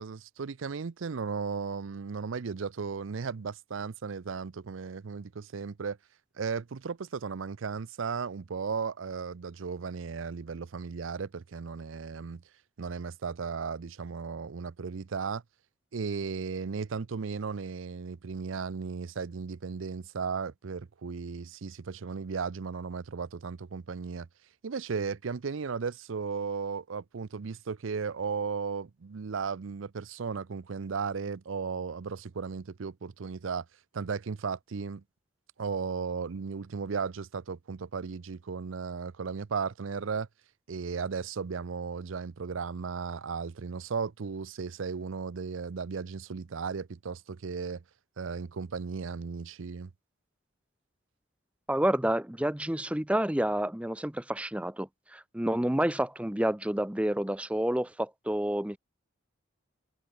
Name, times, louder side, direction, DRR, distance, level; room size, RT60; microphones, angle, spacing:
voice 1, 0.0-6.0 6.4-12.4 12.8-15.4 15.9-24.3 24.6-33.7 33.9-35.0 35.6-40.3 40.7-47.8 48.2-49.9, right 5 dB, 80° right, 0.5 m, -35 dB
voice 2, 51.7-58.8, right 1 dB, 5° right, 0.6 m, -29 dB
head